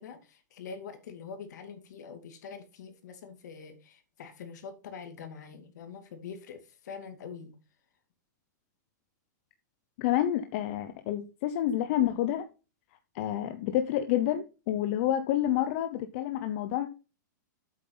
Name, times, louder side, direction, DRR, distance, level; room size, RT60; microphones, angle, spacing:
voice 1, 0.0-7.5, left 6 dB, 65° left, 2.5 m, -44 dB
voice 2, 10.0-12.4 13.1-16.9, left 12 dB, 45° left, 0.9 m, -28 dB
8.3 x 7.4 x 4.0 m
supercardioid pair, 160°, 10 cm